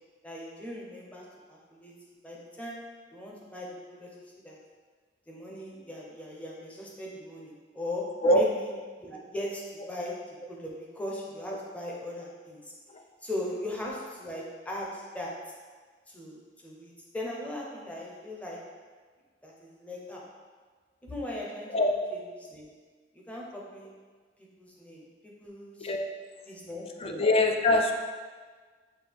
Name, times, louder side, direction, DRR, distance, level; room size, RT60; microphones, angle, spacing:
voice 1, 0.2-1.9 2.2-2.8 3.1-4.1 4.4-4.6 5.3-8.0 8.3-8.7 9.0-12.7 13.2-15.3 16.1-18.6 19.4-20.2 21.0-21.7 22.4-22.7 23.1-23.9 24.6-25.9 26.5-27.2, left 1 dB, 10° left, -4 dB, 0.7 m, -39 dB
voice 2, 25.8-26.1 27.0-27.9, left 1 dB, 35° left, 4 dB, 0.4 m, -23 dB
6.5 x 2.3 x 3.5 m, 1.5 s
head